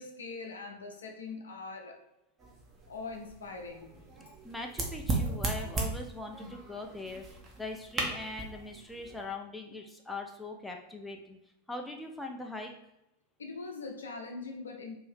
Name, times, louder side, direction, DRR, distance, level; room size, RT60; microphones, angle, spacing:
voice 1, 0.0-2.0 2.9-4.0 13.4-14.9, left 3 dB, 70° left, 2 dB, 0.6 m, -42 dB
sound 1, 2.4-9.3, right 3 dB, 25° right, 0.7 m, -37 dB
voice 2, 4.4-7.2 7.6-11.4 11.7-12.7, left 2 dB, 5° left, 2 dB, 0.4 m, -41 dB
2.6 x 2.6 x 3.3 m, 0.89 s
figure-of-eight pair, 90°, 0 cm